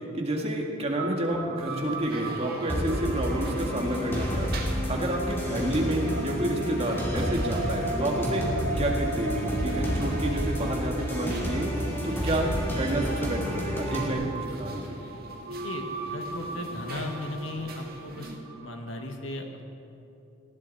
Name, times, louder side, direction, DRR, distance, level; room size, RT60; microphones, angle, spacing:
voice 1, 0.1-4.5 4.9-8.5 8.8-11.7 12.0-15.0, right 1 dB, 30° right, 0 dB, 2.0 m, -29 dB
sound 1, 1.0-19.1, right 2 dB, 85° right, 2.2 m, -39 dB
sound 2, 1.5-18.4, right 2 dB, 50° right, 1.9 m, -44 dB
sound 3, 2.7-14.1, equal, 10° left, 2.6 m, -30 dB
voice 2, 15.5-18.3 18.6-19.5, left 2 dB, 75° left, 3 dB, 1.7 m, -36 dB
19.5 x 15.0 x 4.2 m, 2.8 s
head